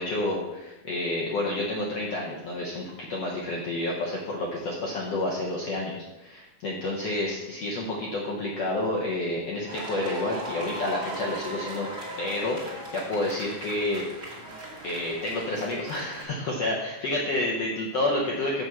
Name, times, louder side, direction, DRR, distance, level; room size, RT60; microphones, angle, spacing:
voice 1, 0.0-11.9 12.2-14.1 14.8-18.6, left 2 dB, 80° left, -3 dB, 1.3 m, -29 dB
sound 1, 9.7-16.2, right 1 dB, 25° right, 1.8 m, -38 dB
6.5 x 6.2 x 7.2 m, 1.0 s
omnidirectional pair, 4.5 m